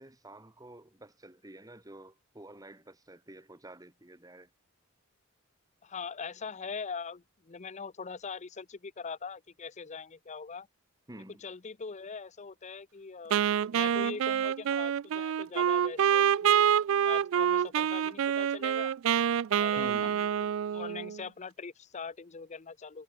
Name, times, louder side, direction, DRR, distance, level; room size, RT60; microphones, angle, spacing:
voice 1, 0.0-4.5 11.1-11.4 19.8-20.2, right 1 dB, 15° right, 2.1 m, -49 dB
voice 2, 5.8-10.7 11.4-16.6 17.0-18.9 19.5-20.3 20.7-23.0, left 5 dB, 35° left, 0.6 m, -42 dB
Wind instrument woodwind instrument, 13.3-21.2, right 9 dB, 70° right, 0.3 m, -27 dB
head